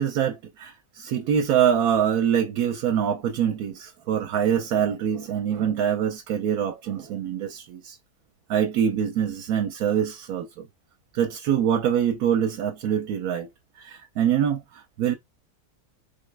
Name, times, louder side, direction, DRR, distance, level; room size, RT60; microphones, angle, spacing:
voice 1, 0.0-7.9 8.5-10.7 11.1-13.5 13.8-15.1, right 9 dB, 75° right, 1.1 m, -24 dB
3.9 x 3.6 x 3.3 m
omnidirectional pair, 1.6 m